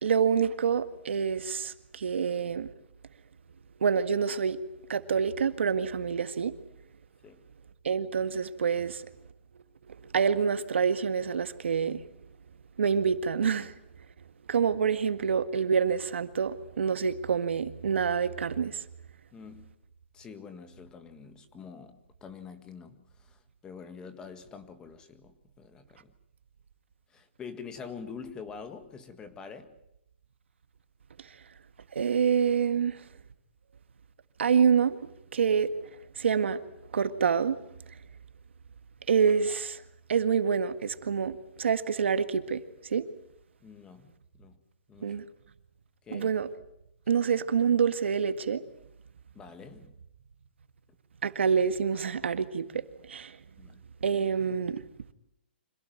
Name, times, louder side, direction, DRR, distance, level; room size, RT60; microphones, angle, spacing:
voice 1, 0.0-2.7 3.8-4.6 4.9-6.5 7.8-9.1 9.9-12.0 12.8-13.7 14.5-18.8 32.0-33.0 34.4-35.0 35.3-35.7 36.2-36.6 36.9-37.6 39.1-39.8 40.1-42.6 42.9-43.1 45.0-45.2 46.1-46.5 47.1-48.6 51.2-53.4 54.0-54.8, right 6 dB, 85° right, 1.9 m, -27 dB
voice 2, 19.3-19.7 20.1-26.1 27.1-29.7 43.6-44.6 44.9-45.2 46.0-46.3 49.3-50.0 53.6-53.8, left 6 dB, 15° left, 1.8 m, -46 dB
26.0 x 17.5 x 9.3 m
hypercardioid pair, 160°, 6 cm